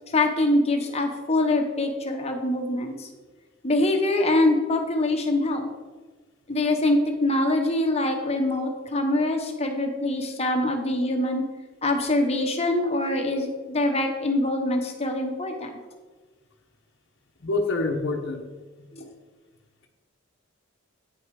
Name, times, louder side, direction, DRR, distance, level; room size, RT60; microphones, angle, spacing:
voice 1, 0.1-3.1 3.6-5.7 6.5-11.4 11.8-15.7 18.9-19.0, left 2 dB, 30° left, 3 dB, 1.1 m, -24 dB
voice 2, 17.4-18.4 18.8-19.1, left 2 dB, 60° left, 1 dB, 1.0 m, -27 dB
9.3 x 5.5 x 4.8 m, 1.4 s
head